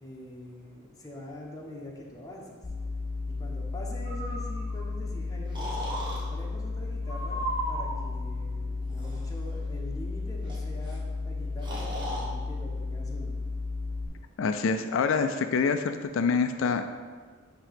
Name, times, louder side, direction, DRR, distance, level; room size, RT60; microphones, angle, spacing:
voice 1, 0.0-2.6 3.4-13.4, left 1 dB, 20° left, -2 dB, 1.0 m, -44 dB
sound 1, 2.6-14.1, left 3 dB, 40° left, 1.1 m, -33 dB
Breathing, 4.1-4.8 5.5-6.2 7.1-8.0 8.9-9.3 10.5-10.6 10.8-11.0 11.6-12.3, right 1 dB, 25° right, 1.2 m, -35 dB
voice 2, 14.4-16.8, left 5 dB, 70° left, 8 dB, 0.4 m, -26 dB
8.7 x 2.9 x 5.0 m, 1.5 s
head